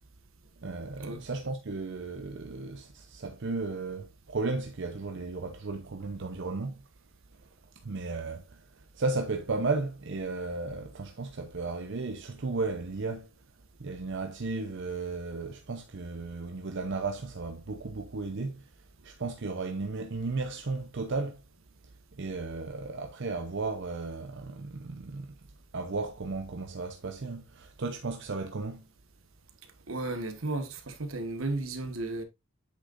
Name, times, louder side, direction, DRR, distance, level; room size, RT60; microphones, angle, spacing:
voice 1, 0.6-6.8 7.8-8.7 8.9-13.3 13.8-18.7 19.0-21.4 22.1-25.4 25.7-28.9, right 3 dB, 60° right, 0.7 m, -34 dB
voice 2, 29.9-32.2, right 2 dB, 80° right, 1.4 m, -34 dB
8.2 x 6.4 x 2.5 m
head